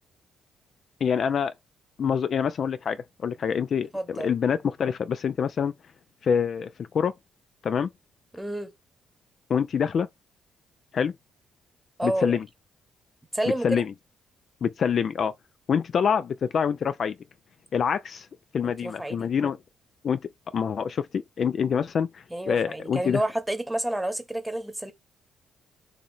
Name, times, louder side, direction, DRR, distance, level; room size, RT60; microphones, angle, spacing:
voice 1, 1.0-1.5 2.0-5.7 6.2-7.1 7.6-7.9 9.5-10.1 10.9-11.1 12.0-12.5 13.6-13.9 14.6-15.3 15.7-17.2 17.7-18.3 18.5-19.6 20.0-20.2 20.5-23.2, left 7 dB, 55° left, 0.3 m, -26 dB
voice 2, 3.9-4.3 8.3-8.7 12.0-12.4 13.3-13.8 18.6-19.3 22.3-24.9, right 1 dB, 5° right, 0.9 m, -30 dB
2.9 x 2.7 x 4.3 m
cardioid pair, 90°, 0 cm